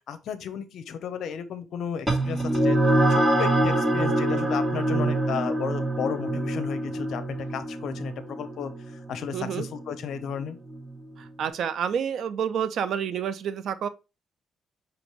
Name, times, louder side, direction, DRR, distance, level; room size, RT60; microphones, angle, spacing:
voice 1, 0.1-2.8 3.1-10.6, left 8 dB, 70° left, 0.6 m, -34 dB
sound 1, 2.1-10.9, right 1 dB, 15° right, 1.7 m, -25 dB
voice 2, 9.3-9.7 11.2-13.9, right 8 dB, 70° right, 0.5 m, -29 dB
5.1 x 3.0 x 3.0 m
cardioid pair, 90°, 0 cm